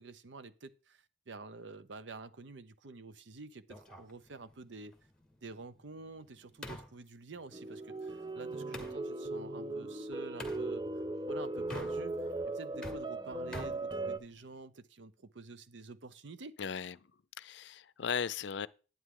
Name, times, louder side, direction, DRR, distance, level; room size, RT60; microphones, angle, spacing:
voice 1, 0.0-4.9 5.4-12.2 12.5-16.5, right 3 dB, 80° right, 0.7 m, -49 dB
sound 1, 3.7-9.0 10.4-10.7 11.6-12.3 12.6-14.6, left 1 dB, 5° left, 1.6 m, -48 dB
sound 2, 7.5-14.2, right 2 dB, 20° right, 0.4 m, -38 dB
voice 2, 16.6-17.0 17.4-18.7, left 6 dB, 75° left, 0.5 m, -36 dB
11.5 x 9.0 x 3.8 m
head